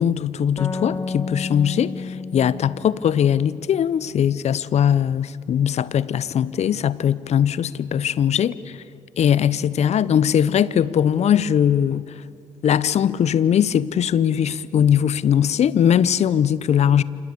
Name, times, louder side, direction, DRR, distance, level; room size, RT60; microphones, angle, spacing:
voice 1, 0.0-8.5 9.2-12.2 12.6-17.0, left 9 dB, 55° left, 0.9 m, -20 dB
sound 1, 0.6-4.1, left 4 dB, 25° left, 2.1 m, -32 dB
28.5 x 27.5 x 7.0 m
hypercardioid pair, 45°, 13 cm